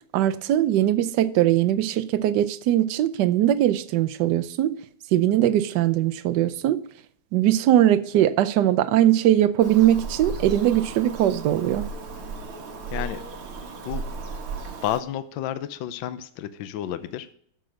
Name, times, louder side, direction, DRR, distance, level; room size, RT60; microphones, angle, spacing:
voice 1, 0.1-4.8 5.1-6.8 7.3-11.9, right 12 dB, 70° right, 1.1 m, -21 dB
Bird vocalization bird call bird song, 9.6-15.0, right 4 dB, 85° right, 2.3 m, -35 dB
voice 2, 12.9-13.2 13.8-14.0 14.8-17.3, left 11 dB, 70° left, 1.3 m, -31 dB
9.3 x 6.9 x 6.3 m
omnidirectional pair, 2.3 m